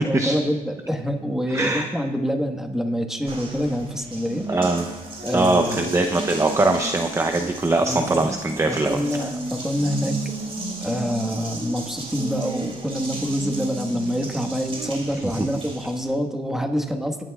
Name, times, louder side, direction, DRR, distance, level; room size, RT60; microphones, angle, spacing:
voice 1, 0.0-4.5 5.2-5.8 7.9-8.3 8.6-10.3 10.8-17.2, equal, 5° right, 4 dB, 1.4 m, -26 dB
voice 2, 1.5-1.9 4.5-4.9 5.3-9.3 15.2-15.5, right 2 dB, 20° right, 5 dB, 0.7 m, -22 dB
Water tap faucet, 3.3-16.1, right 2 dB, 35° right, 3.0 m, -33 dB
19.5 x 11.5 x 2.4 m, 1.1 s
cardioid pair, 95°, 16 cm